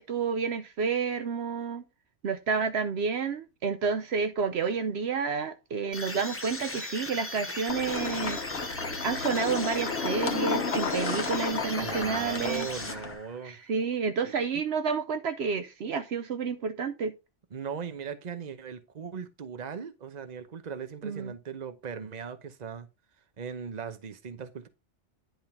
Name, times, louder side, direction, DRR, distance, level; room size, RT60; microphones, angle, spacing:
voice 1, 0.0-1.8 2.2-8.4 9.0-12.7 13.4-17.1 21.0-21.3, right 5 dB, 65° right, 0.9 m, -30 dB
sound 1, 5.9-13.4, left 2 dB, 15° left, 0.7 m, -38 dB
sound 2, 7.7-13.1, left 5 dB, 60° left, 1.3 m, -33 dB
voice 2, 11.8-13.6 14.2-14.6 17.5-22.9 23.4-24.7, right 6 dB, 40° right, 0.9 m, -38 dB
10.5 x 3.7 x 4.3 m
omnidirectional pair, 1.2 m